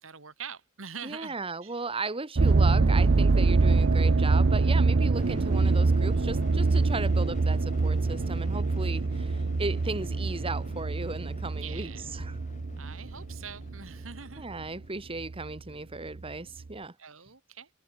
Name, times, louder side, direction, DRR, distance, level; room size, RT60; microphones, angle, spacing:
voice 1, 0.0-1.4 1.6-1.8 11.5-12.1 12.8-14.5 17.0-17.7, right 7 dB, 90° right, 2.7 m, -44 dB
voice 2, 1.0-12.4 14.4-16.9, right 3 dB, 30° right, 1.7 m, -36 dB
sound 1, 2.4-14.6 15.2-15.6 16.2-16.3 16.6-16.7, right 3 dB, 60° right, 0.6 m, -25 dB
sound 2, 5.2-15.4, left 2 dB, 40° left, 1.1 m, -46 dB
head